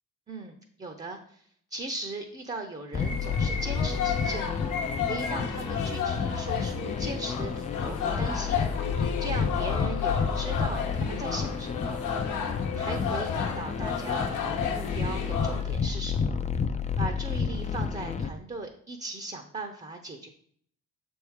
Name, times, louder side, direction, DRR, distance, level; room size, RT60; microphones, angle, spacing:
voice 1, 0.3-1.4 1.7-4.5 5.0-8.6 9.2-12.0 12.7-16.4 17.0-20.3, right 2 dB, 25° right, 5 dB, 0.7 m, -38 dB
sound 1, 2.9-18.3, left 5 dB, 25° left, 0.4 m, -30 dB
sound 2, 3.0-15.6, left 7 dB, 85° left, 1.0 m, -33 dB
6.7 x 3.6 x 4.7 m, 0.62 s
cardioid pair, 90°, 30 cm